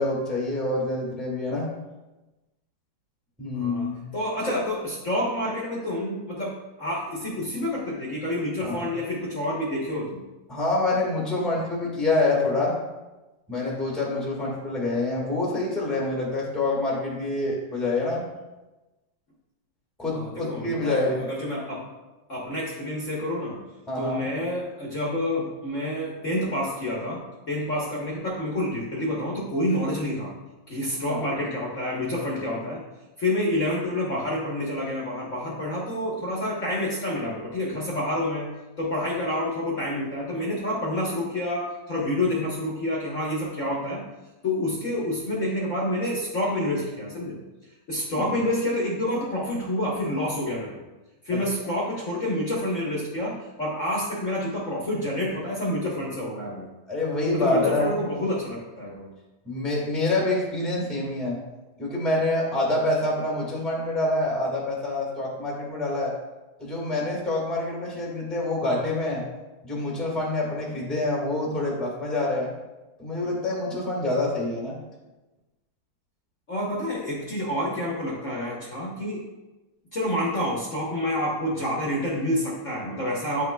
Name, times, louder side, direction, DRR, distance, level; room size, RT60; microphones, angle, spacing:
voice 1, 0.0-1.7 3.4-4.1 4.5-4.6 8.6-8.9 10.5-12.8 13.5-18.2 20.0-21.2 23.9-24.2 31.1-31.2 48.1-48.4 51.3-51.4 56.9-57.9 59.4-61.4 61.8-66.1 66.6-69.2 69.6-72.5 73.0-74.8, left 2 dB, ahead, -4 dB, 1.3 m, -26 dB
voice 2, 3.5-10.2 20.1-21.9 22.3-23.6 23.9-30.3 30.7-32.8 33.2-38.5 38.8-44.0 44.4-47.4 47.9-50.7 51.2-56.7 57.3-59.1 76.5-79.2 79.9-83.4, left 1 dB, 45° left, -5 dB, 1.3 m, -28 dB
8.7 x 5.7 x 2.2 m, 1.1 s
omnidirectional pair, 2.1 m